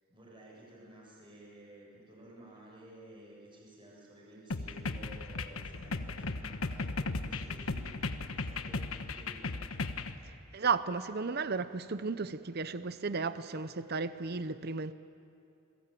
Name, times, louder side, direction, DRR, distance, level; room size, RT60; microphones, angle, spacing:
voice 1, 0.1-9.5, right 1 dB, 25° right, 7.4 m, -53 dB
sound 1, 4.5-10.2, left 3 dB, 80° left, 1.2 m, -36 dB
voice 2, 10.5-14.9, right 4 dB, 50° right, 0.7 m, -34 dB
28.5 x 22.5 x 9.2 m
head